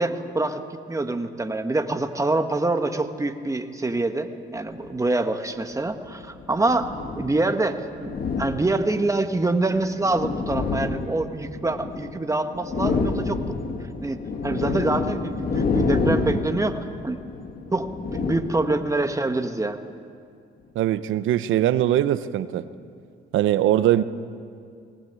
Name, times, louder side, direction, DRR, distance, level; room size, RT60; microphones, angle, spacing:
voice 1, 0.0-13.5 14.0-17.2 17.7-19.8, right 2 dB, 15° right, 7 dB, 1.5 m, -25 dB
sound 1, 4.7-4.9 5.9-7.4 8.0-9.1 9.8-12.2 12.5-19.0, left 4 dB, 50° left, 2.0 m, -28 dB
voice 2, 20.7-22.7 23.3-24.0, right 12 dB, 85° right, 14 dB, 0.9 m, -21 dB
20.5 x 19.0 x 8.3 m, 2.3 s
cardioid pair, 90°, 20 cm